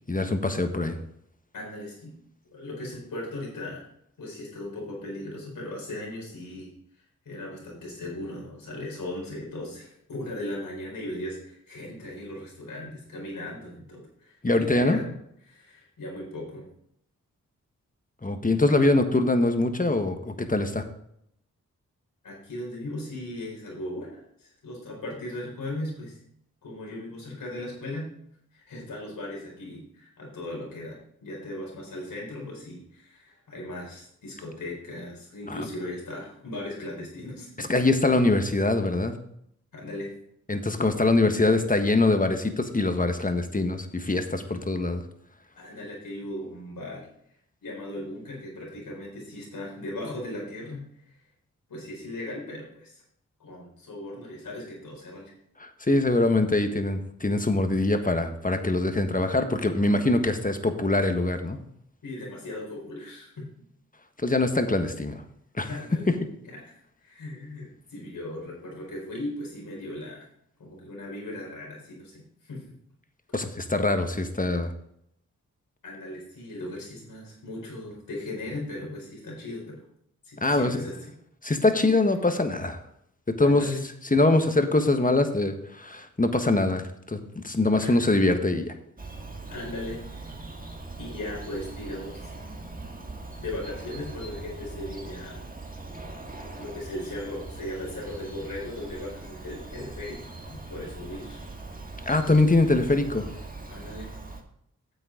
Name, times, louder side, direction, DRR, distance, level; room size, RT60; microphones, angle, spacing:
voice 1, 0.1-1.0 14.4-15.0 18.2-20.8 35.5-35.6 37.6-39.1 40.5-45.0 55.6-61.6 64.2-65.2 65.6-65.7 73.3-74.7 80.4-80.8 81.4-82.8 83.3-83.6 84.1-88.7 102.0-103.3, left 2 dB, 25° left, 7 dB, 1.5 m, -23 dB
voice 2, 1.5-2.2 2.5-3.8 4.2-6.7 7.2-15.2 15.5-16.7 22.2-26.2 26.6-28.1 28.5-37.7 39.7-40.1 45.6-47.1 47.6-51.1 51.7-53.0 53.4-55.3 62.0-63.6 65.7-66.1 66.4-66.6 67.0-70.2 70.6-72.8 75.8-79.8 80.2-80.9 83.4-83.8 87.8-88.1 89.5-90.4 91.0-92.3 93.3-95.4 96.6-101.5 103.7-104.2, left 1 dB, 85° left, -3 dB, 4.4 m, -37 dB
Bird vocalization bird call bird song, 89.0-104.4, right 2 dB, 25° right, 1.8 m, -41 dB
9.7 x 7.8 x 3.8 m, 0.71 s
cardioid pair, 45°, 33 cm